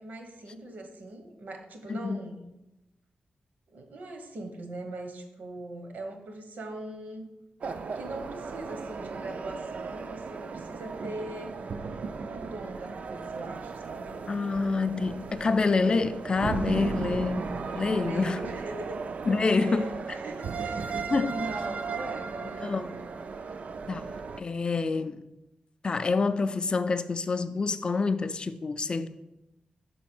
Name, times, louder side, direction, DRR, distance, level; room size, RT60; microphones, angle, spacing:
voice 1, 0.0-2.5 3.7-7.3 7.9-11.5 12.3-14.2 18.0-19.0 19.5-23.1, right 2 dB, 75° right, 1.0 m, -41 dB
voice 2, 1.9-2.2 14.3-17.5 17.7-18.4 19.3-20.2 21.1-21.3 22.6-22.8 23.9-25.2 25.8-29.1, left 4 dB, 30° left, 0.3 m, -27 dB
sound 1, 7.6-24.4, right 4 dB, 55° right, 0.3 m, -36 dB
5.4 x 4.1 x 6.0 m
wide cardioid pair, 160°, 3 cm